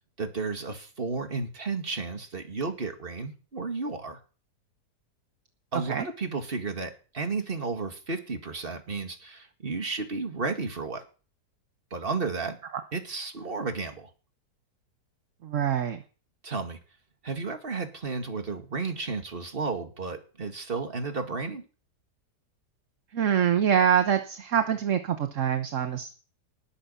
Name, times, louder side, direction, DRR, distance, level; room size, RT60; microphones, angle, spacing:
voice 1, 0.2-4.2 5.7-11.0 11.9-12.6 12.9-14.1 16.4-16.8 17.2-21.6, right 4 dB, 35° right, 5 dB, 2.3 m, -33 dB
voice 2, 5.7-6.1 15.4-16.0 23.1-26.1, right 8 dB, 50° right, 8 dB, 1.3 m, -25 dB
19.5 x 8.3 x 5.7 m, 0.37 s
omnidirectional pair, 1.8 m